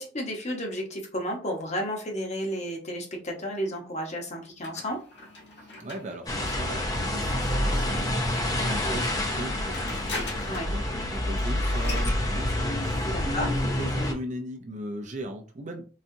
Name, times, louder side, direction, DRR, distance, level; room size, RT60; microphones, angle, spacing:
voice 1, 0.0-5.0 8.8-9.0 10.5-10.7 13.0-13.5, equal, 40° left, 1 dB, 0.9 m, -32 dB
sound 1, 4.6-8.3 9.3-10.8 11.1-11.2 11.4-12.2, left 2 dB, 65° left, 1.3 m, -41 dB
voice 2, 5.6-15.9, equal, 40° right, 3 dB, 0.5 m, -38 dB
sound 2, 6.3-14.1, left 1 dB, 20° left, 0.5 m, -28 dB
4.0 x 2.3 x 2.6 m, 0.38 s
head